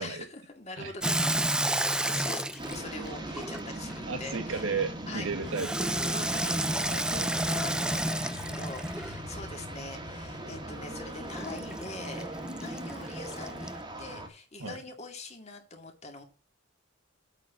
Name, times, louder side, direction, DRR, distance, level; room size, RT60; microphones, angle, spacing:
voice 1, 0.0-1.4 1.8-4.6 5.1-5.3 6.0-12.3 12.6-16.2, left 3 dB, 30° left, 2.4 m, -43 dB
Water tap faucet / Sink (filling or washing), 1.0-4.0 5.5-9.3 11.3-13.8, right 1 dB, 5° right, 0.4 m, -31 dB
sound 1, 2.6-14.3, right 1 dB, 20° right, 1.7 m, -39 dB
voice 2, 4.1-7.3 14.6-14.8, right 4 dB, 70° right, 2.0 m, -35 dB
8.3 x 4.5 x 7.1 m
head